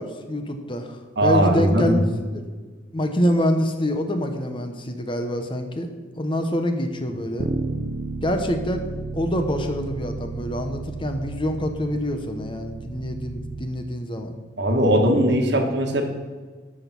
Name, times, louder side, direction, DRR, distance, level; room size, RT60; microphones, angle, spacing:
voice 1, 0.0-2.0 2.3-2.4 2.9-5.9 6.2-7.5 8.2-8.9 9.1-14.3, equal, 25° left, 6 dB, 0.9 m, -26 dB
voice 2, 1.2-2.0 14.6-16.0, right 1 dB, 65° right, 3 dB, 1.6 m, -19 dB
Bass guitar, 7.4-13.6, right 3 dB, 45° right, 0.6 m, -32 dB
12.5 x 6.2 x 5.9 m, 1.4 s
head